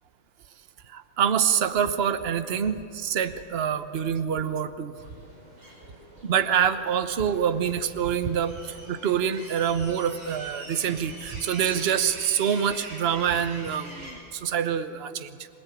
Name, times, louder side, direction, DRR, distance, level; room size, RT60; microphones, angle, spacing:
voice 1, 0.9-5.0 6.2-15.5, right 8 dB, 45° right, 11 dB, 0.8 m, -26 dB
sound 1, 5.0-14.1, right 1 dB, 85° right, 6.2 m, -44 dB
27.0 x 19.0 x 9.0 m, 2.5 s
omnidirectional pair, 2.2 m